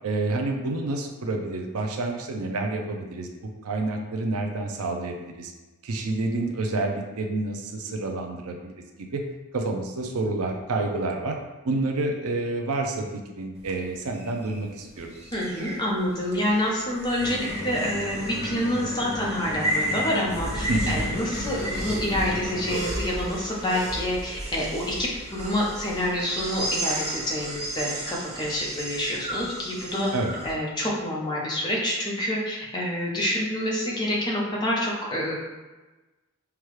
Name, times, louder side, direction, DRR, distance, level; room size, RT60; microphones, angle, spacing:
voice 1, 0.0-5.5 5.8-9.2 9.5-11.4 11.6-13.1 13.4-15.1 20.7-21.1 30.1-30.3, right 2 dB, 80° right, 3 dB, 0.5 m, -29 dB
sound 1, 13.6-30.5, right 1 dB, 30° right, 0.7 m, -33 dB
voice 2, 15.3-17.4 17.6-30.1 30.4-35.3, left 1 dB, 20° left, -4 dB, 0.8 m, -27 dB
sound 2, 17.2-22.8, left 1 dB, 70° left, 0.8 m, -35 dB
5.8 x 2.3 x 3.2 m, 1.1 s
head